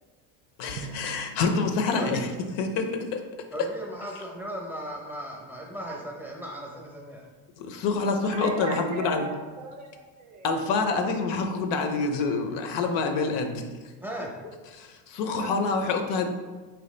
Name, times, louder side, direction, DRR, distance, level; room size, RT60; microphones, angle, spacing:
voice 1, 0.6-2.3 2.6-3.2 7.6-9.3 10.4-13.9 14.7-16.3, left 4 dB, 60° left, 5 dB, 0.7 m, -27 dB
Drum, 0.8-3.5, right 4 dB, 80° right, 0.6 m, -45 dB
voice 2, 3.5-7.3 14.0-14.3, equal, 5° right, -1 dB, 0.7 m, -37 dB
voice 3, 8.3-10.5 15.3-15.5, right 3 dB, 40° right, 3 dB, 0.5 m, -36 dB
4.6 x 2.9 x 3.2 m, 1.3 s
supercardioid pair, 110°, 48 cm